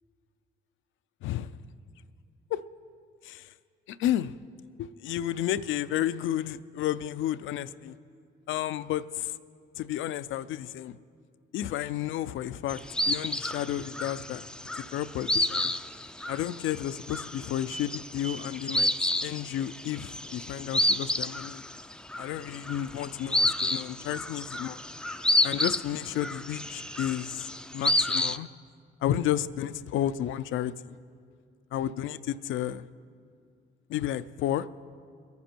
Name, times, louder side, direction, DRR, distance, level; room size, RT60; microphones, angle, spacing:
voice 1, 1.2-1.6 2.5-2.6 3.2-3.5 3.9-4.3 4.8-8.0 8.5-9.4 9.8-11.0 11.5-12.8 13.1-14.4 14.8-15.7 16.3-18.9 19.2-21.6 22.2-24.8 25.4-28.5 29.0-31.0 31.7-32.9 33.9-34.7, left 11 dB, 80° left, 14 dB, 0.4 m, -32 dB
sound 1, 12.7-28.4, left 1 dB, 5° left, 0.4 m, -30 dB
22.0 x 9.5 x 4.5 m, 2.2 s
cardioid pair, 90°, 20 cm